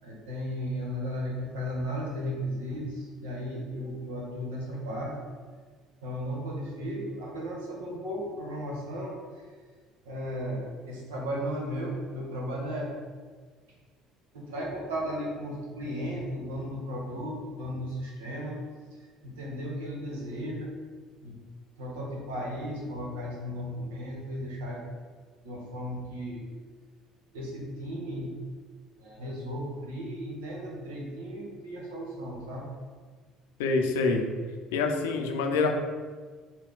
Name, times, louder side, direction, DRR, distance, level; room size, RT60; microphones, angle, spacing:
voice 1, 0.0-5.3 6.0-9.4 10.0-12.9 14.3-18.6 18.9-20.7 21.2-21.4 21.8-24.8 25.4-26.5 27.3-28.3 29.0-32.7, equal, 80° right, -2 dB, 1.1 m, -35 dB
voice 2, 33.6-34.2 34.7-35.8, left 4 dB, 75° left, 3 dB, 0.5 m, -26 dB
6.1 x 2.3 x 3.6 m, 1.5 s
hypercardioid pair, 60°, 0 cm